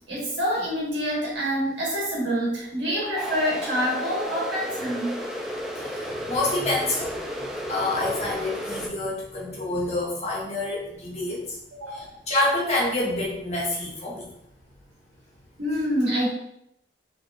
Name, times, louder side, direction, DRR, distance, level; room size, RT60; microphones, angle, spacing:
voice 1, 0.1-5.1 11.7-12.1 15.6-16.3, equal, 70° right, -6 dB, 1.5 m, -26 dB
sound 1, 3.2-8.9, equal, ahead, 0.4 m, -33 dB
voice 2, 5.8-7.2 7.7-11.4 11.9-14.3, left 2 dB, 35° left, -4 dB, 1.2 m, -27 dB
5.7 x 2.9 x 2.5 m, 0.78 s
head